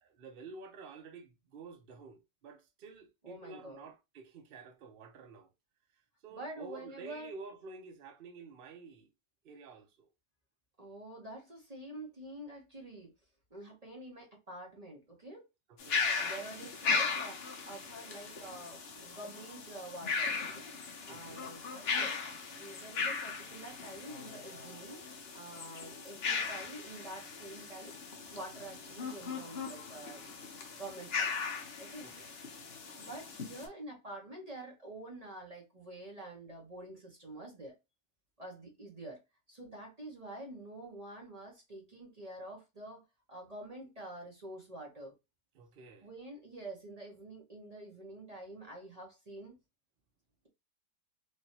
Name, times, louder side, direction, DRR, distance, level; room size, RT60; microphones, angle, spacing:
voice 1, 0.0-5.5 6.2-9.1 9.4-10.1 15.9-16.2 21.1-21.6 32.0-32.3 45.5-46.1, right 4 dB, 75° right, 0.5 m, -50 dB
voice 2, 3.2-3.9 6.3-7.3 10.8-13.1 13.5-15.5 16.2-20.7 21.1-22.2 22.6-25.0 25.3-27.9 28.3-30.4 30.7-31.3 31.8-32.1 33.0-37.8 38.4-39.2 39.5-45.1 46.0-49.6, right 1 dB, 35° right, 0.7 m, -47 dB
sound 1, 15.8-33.7, left 5 dB, 55° left, 0.7 m, -38 dB
3.2 x 2.7 x 2.7 m
omnidirectional pair, 1.8 m